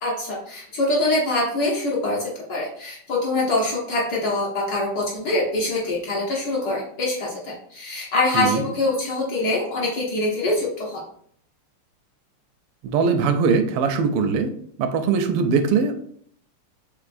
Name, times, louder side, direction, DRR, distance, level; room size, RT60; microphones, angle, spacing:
voice 1, 0.0-11.0, left 2 dB, 60° left, -3 dB, 1.1 m, -24 dB
voice 2, 12.8-14.5 14.8-16.0, right 5 dB, 85° right, 8 dB, 1.5 m, -21 dB
4.6 x 3.5 x 2.5 m, 0.63 s
omnidirectional pair, 2.4 m